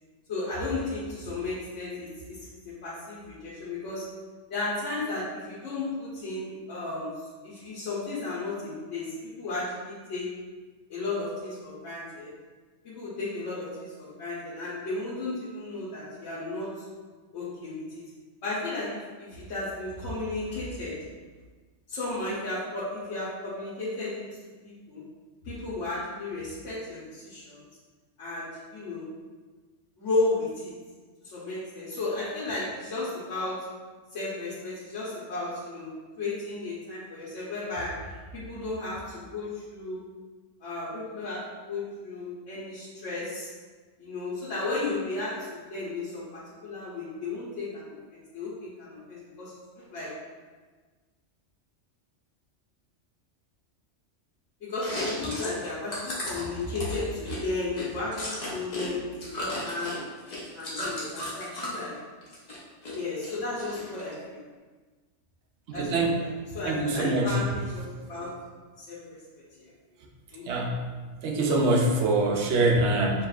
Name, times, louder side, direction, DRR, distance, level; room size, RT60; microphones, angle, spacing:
voice 1, 0.3-4.1 4.5-10.3 10.9-12.3 12.8-16.8 17.3-18.0 18.4-21.0 21.9-24.3 24.6-25.0 25.4-27.6 28.2-29.0 30.0-30.7 31.2-33.7 34.1-40.0 40.6-43.5 44.0-50.2 54.6-60.0 60.5-62.0 62.9-64.4 65.7-68.4 68.8-69.2 69.6-69.7 70.3-70.7, left 2 dB, 85° left, -10 dB, 1.3 m, -34 dB
Chewing mastication, 54.7-58.9 59.1-61.8 62.2-63.0 63.2-64.1, left 1 dB, 40° left, 0.9 m, -35 dB
voice 2, 65.8-66.2 66.6-67.4 70.5-70.8 71.2-73.3, right 2 dB, 75° right, 1 dB, 0.9 m, -24 dB
4.8 x 3.1 x 2.4 m, 1.4 s
omnidirectional pair, 1.2 m